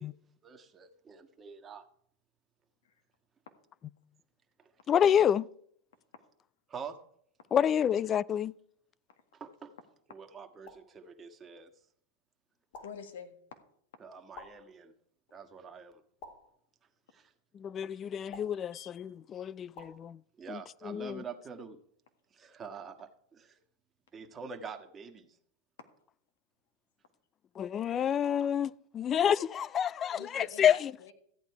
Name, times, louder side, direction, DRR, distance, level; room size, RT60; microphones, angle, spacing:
voice 1, 0.0-1.9 6.7-7.0 9.3-9.7 10.1-11.7 14.0-14.9 15.3-16.0 17.1-17.3 20.4-21.8 22.3-23.6 24.1-25.4 30.3-30.4, right 6 dB, 25° right, 1.4 m, -46 dB
voice 2, 4.9-5.5 7.5-8.5 17.6-20.2 20.5-21.2 27.6-30.9, left 9 dB, 30° left, 0.3 m, -28 dB
sound 1, 10.7-11.0 12.7-13.1 14.3-14.8 16.2-16.6 18.3-18.7 19.8-20.0, left 3 dB, 55° left, 2.3 m, -50 dB
voice 3, 12.8-13.3 18.7-19.0 30.1-31.1, left 7 dB, 80° left, 1.7 m, -46 dB
14.0 x 8.9 x 4.7 m
hypercardioid pair, 105°, 0 cm